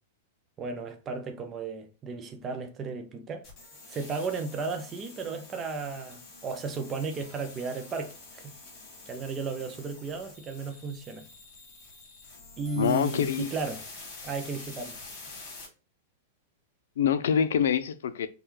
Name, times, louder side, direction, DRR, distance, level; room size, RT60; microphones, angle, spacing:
voice 1, 0.6-3.4 3.9-8.5 9.1-11.3 12.6-13.8 14.2-15.0, right 4 dB, 15° right, 0.4 m, -34 dB
sound 1, 3.4-15.6, left 3 dB, 20° left, 2.1 m, -47 dB
voice 2, 12.8-13.5 17.0-18.3, left 8 dB, 90° left, 0.5 m, -25 dB
5.5 x 2.2 x 3.1 m
supercardioid pair, 180°, 0 cm